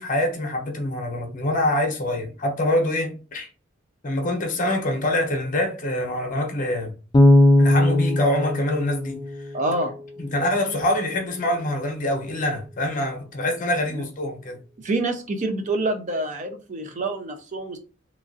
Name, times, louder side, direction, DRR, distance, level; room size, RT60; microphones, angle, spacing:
voice 1, 0.0-3.5 4.0-6.9 7.6-9.2 10.2-14.6, left 1 dB, 40° left, 0.8 m, -25 dB
Bass guitar, 7.1-10.2, left 1 dB, 20° left, 0.3 m, -19 dB
voice 2, 9.5-9.9 13.9-14.0 14.8-17.8, right 2 dB, 40° right, 0.5 m, -27 dB
3.0 x 2.5 x 2.5 m
head